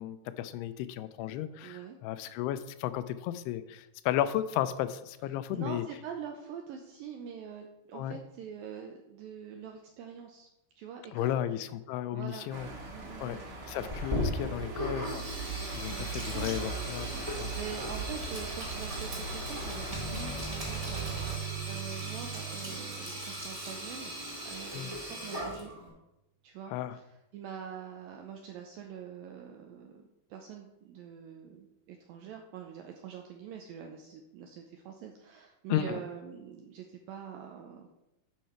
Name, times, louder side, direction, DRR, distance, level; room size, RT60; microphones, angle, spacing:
voice 1, 0.0-5.8 7.9-8.2 11.1-12.7 13.2-13.4 13.7-15.3 15.7-17.1 17.4-17.5 24.7-24.9 26.7-27.0 35.7-36.0, left 12 dB, 85° left, 13 dB, 2.5 m, -34 dB
voice 2, 1.6-2.0 5.5-10.5 10.8-11.4 12.1-12.6 12.9-13.5 13.8-13.9 14.4-14.6 15.8-16.5 17.2-24.2 24.5-25.7 26.4-37.9, right 7 dB, 85° right, 2 dB, 2.1 m, -44 dB
sound 1, 12.5-21.4, right 4 dB, 50° right, 2.4 m, -39 dB
Sink (filling or washing), 13.9-25.9, equal, 25° right, 0.7 m, -38 dB
sound 2, 19.9-24.1, right 8 dB, 65° right, 2.5 m, -41 dB
9.2 x 5.7 x 4.4 m, 0.92 s
omnidirectional pair, 4.8 m